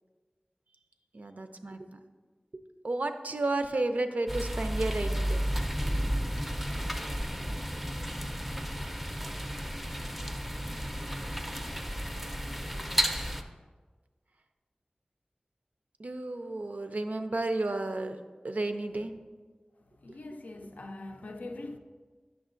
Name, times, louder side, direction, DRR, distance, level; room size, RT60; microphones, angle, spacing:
voice 1, 1.1-2.0 2.5-5.5 16.0-18.2 18.4-19.1, right 2 dB, 70° right, 0.4 m, -32 dB
sound 1, 4.3-13.4, equal, 5° right, 0.4 m, -32 dB
voice 2, 20.0-21.8, left 2 dB, 90° left, 0.4 m, -42 dB
8.0 x 6.1 x 2.5 m
wide cardioid pair, 55°, 3 cm